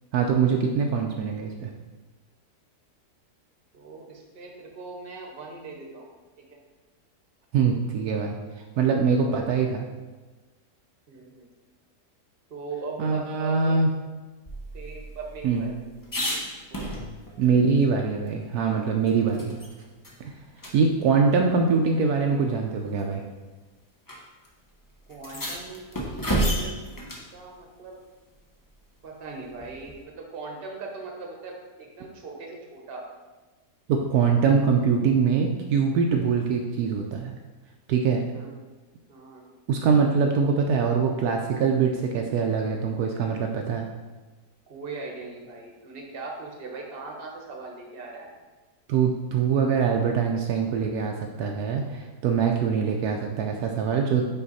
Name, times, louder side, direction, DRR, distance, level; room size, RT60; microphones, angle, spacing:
voice 1, 0.1-1.7 7.5-8.4 8.8-9.9 13.0-13.9 15.4-15.6 17.4-19.6 20.2-20.3 20.7-23.2 33.9-37.3 37.9-38.2 39.7-43.9 48.9-54.3, right 5 dB, 75° right, 2 dB, 1.1 m, -23 dB
voice 2, 3.7-6.1 6.5-6.6 9.3-9.4 11.1-11.5 12.5-13.8 14.7-15.8 16.7-16.9 25.1-26.8 27.3-28.0 29.0-33.0 38.3-38.5 39.1-39.4 44.7-48.3, right 3 dB, 40° right, 0 dB, 1.1 m, -40 dB
sound 1, 14.5-17.4 17.8-17.9 18.3-19.7 20.0-20.2 20.6-20.7 21.8-21.9 22.8-23.1 24.1-24.2 24.4-24.5 25.1-27.3 29.6-30.0, right 1 dB, 25° left, 0.5 m, -31 dB
5.8 x 4.9 x 4.0 m, 1.2 s
omnidirectional pair, 1.7 m